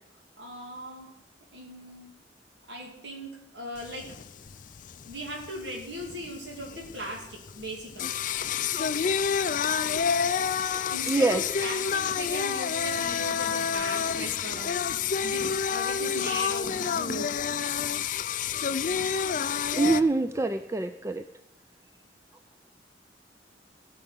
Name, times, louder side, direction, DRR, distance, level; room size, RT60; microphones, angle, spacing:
voice 1, 0.4-1.1 1.5-2.1 2.7-4.1 5.1-8.1 10.9-14.8 15.2-17.3, equal, 70° right, -1 dB, 2.7 m, -39 dB
Singing, 3.8-20.0, left 7 dB, 45° left, 0.4 m, -29 dB
voice 2, 10.6-11.5 19.8-21.2, right 3 dB, 15° right, 9 dB, 0.4 m, -26 dB
16.0 x 5.6 x 8.0 m, 0.91 s
head